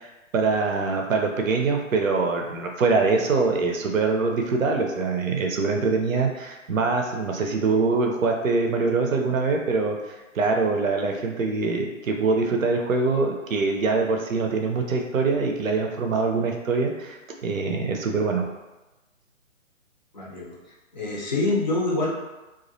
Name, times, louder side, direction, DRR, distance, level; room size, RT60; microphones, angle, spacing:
voice 1, 0.0-10.0 10.3-18.5, right 4 dB, 80° right, 2 dB, 0.6 m, -24 dB
voice 2, 20.1-20.6 20.9-22.1, left 2 dB, 35° left, -4 dB, 0.4 m, -25 dB
2.3 x 2.0 x 2.6 m, 1.1 s
figure-of-eight pair, 140°, 40 cm